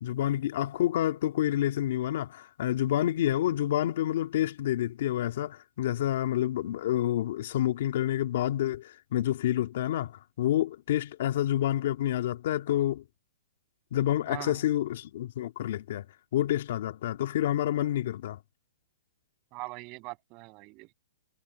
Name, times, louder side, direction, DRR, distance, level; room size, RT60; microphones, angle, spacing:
voice 1, 0.0-10.1 10.4-13.0 13.9-16.1 16.3-18.4, left 12 dB, 50° left, 2.2 m, -28 dB
voice 2, 14.3-14.6 19.5-20.9, right 26 dB, 30° right, 7.0 m, -42 dB
hypercardioid pair, 165°, 0 cm